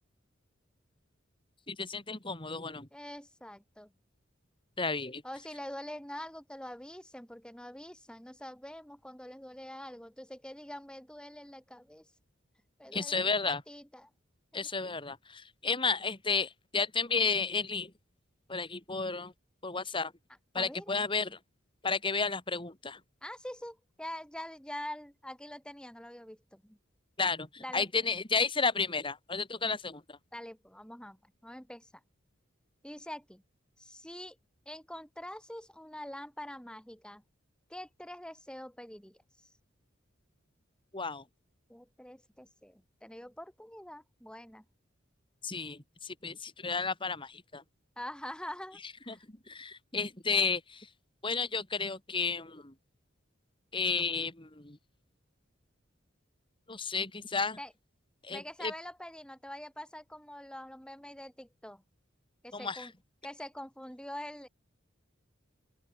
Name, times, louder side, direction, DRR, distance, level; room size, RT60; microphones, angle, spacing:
voice 1, 1.7-2.9 4.8-5.2 12.9-13.6 14.5-17.9 18.5-19.3 19.6-20.1 20.5-21.4 21.8-23.0 27.2-30.2 40.9-41.3 45.4-47.6 48.8-50.9 51.2-52.7 53.7-54.8 56.7-57.6 58.2-58.7 62.5-62.9, left 4 dB, 25° left, 3.0 m, -32 dB
voice 2, 2.9-3.9 5.2-12.1 12.8-14.1 14.5-14.7 20.6-21.0 23.2-26.8 27.6-27.9 30.3-31.9 32.8-33.4 33.8-34.4 34.7-37.2 37.7-39.2 41.7-44.6 48.0-48.8 49.1-49.2 57.6-57.7 58.3-61.8 62.4-62.9 63.2-64.5, left 1 dB, 5° left, 5.8 m, -45 dB
open air
head